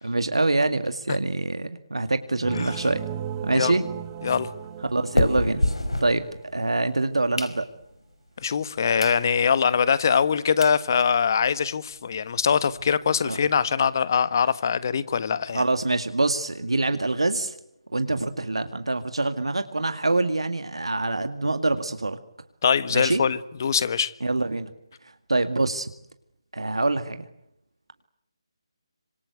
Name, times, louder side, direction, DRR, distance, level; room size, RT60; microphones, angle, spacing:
voice 1, 0.0-3.0 3.4-3.9 4.9-5.6 6.0-6.2 6.5-7.7 13.2-13.4 15.5-17.5 17.9-22.2 22.9-23.2 24.2-24.7 25.3-25.9 26.5-27.3, right 2 dB, 80° right, 2.1 m, -25 dB
sound 1, 2.4-6.4, right 10 dB, 20° right, 2.2 m, -36 dB
sound 2, 2.8-6.7 7.1-8.1 8.6-8.7 9.0-9.2 9.6-9.7 10.3-10.4 10.6-10.8 11.2-11.3 11.5-11.6 11.9-12.0 12.3-13.5, left 1 dB, 85° left, 4.8 m, -30 dB
voice 2, 8.4-15.6 22.6-24.1, left 6 dB, 40° left, 1.4 m, -23 dB
26.5 x 26.0 x 8.1 m
figure-of-eight pair, 155°, 3 cm